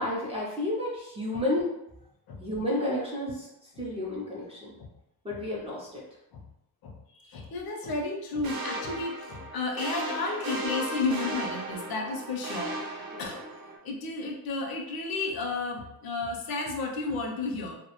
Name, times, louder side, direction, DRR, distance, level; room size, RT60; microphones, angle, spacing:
voice 1, 0.0-1.7 2.4-4.7 5.2-6.0 13.1-13.3, left 1 dB, 15° right, -5 dB, 0.3 m, -31 dB
voice 2, 6.8-12.8 13.2-13.5 13.8-17.8, left 3 dB, 65° left, 1 dB, 0.5 m, -32 dB
sound 1, 8.4-13.8, right 2 dB, 65° right, 0.6 m, -35 dB
2.1 x 2.0 x 2.8 m, 0.84 s
wide cardioid pair, 175°, 39 cm